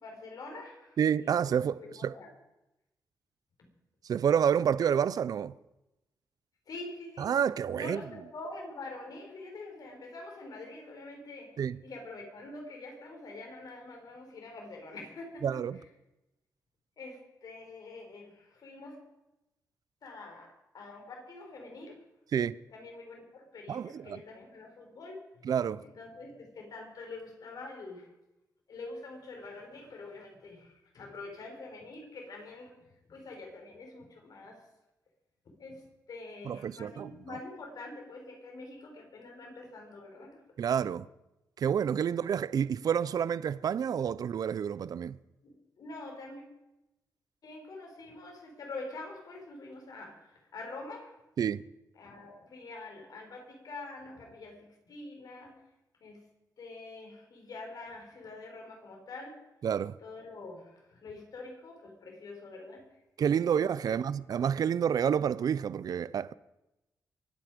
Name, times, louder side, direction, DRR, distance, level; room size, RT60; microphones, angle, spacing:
voice 1, 0.0-2.3 6.7-7.3 7.8-11.5 11.8-15.5 17.0-19.0 20.0-22.0 22.7-25.5 25.8-28.1 28.7-32.7 33.1-34.6 35.6-35.8 36.1-40.4 45.4-46.4 47.4-51.1 51.9-55.6 56.0-56.2 56.6-59.3 60.0-62.8 63.5-63.6 63.8-63.9, left 2 dB, 65° left, 5.0 m, -45 dB
voice 2, 1.0-2.1 4.0-5.5 7.2-8.0 11.6-11.8 15.4-15.8 22.3-22.6 23.7-24.2 25.4-25.8 36.5-37.1 40.6-41.1 41.6-45.2 51.4-51.6 59.6-60.0 63.2-66.3, right 8 dB, 65° right, 0.5 m, -29 dB
23.5 x 9.4 x 5.2 m
cardioid pair, 80°, 7 cm